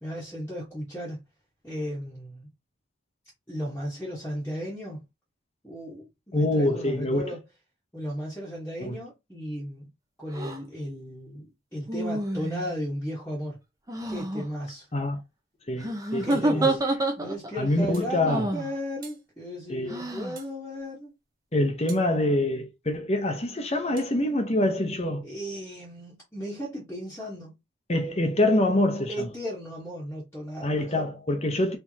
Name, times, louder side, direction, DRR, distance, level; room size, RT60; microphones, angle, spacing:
voice 1, 0.0-1.2 1.6-2.5 3.5-5.0 5.6-7.4 7.9-9.9 10.2-11.5 11.7-13.6 14.1-14.9 16.2-16.8 17.2-21.1 25.2-27.6 29.1-31.1, equal, 10° left, 1.3 m, -35 dB
voice 2, 6.3-7.2 8.8-9.0 14.9-15.2 15.7-16.8 17.6-18.5 19.7-19.9 21.5-25.2 27.9-29.3 30.6-31.8, left 1 dB, 30° left, 0.9 m, -25 dB
sound 1, 10.3-10.6 11.9-12.8 13.9-14.4 15.8-17.5 18.3-18.7 19.9-20.4, right 2 dB, 15° right, 0.8 m, -28 dB
sound 2, 16.3-16.5 17.9-18.2 19.0-19.3 20.3-20.6 21.9-22.1 24.0-24.1, right 6 dB, 45° right, 1.6 m, -48 dB
4.5 x 3.5 x 2.8 m
head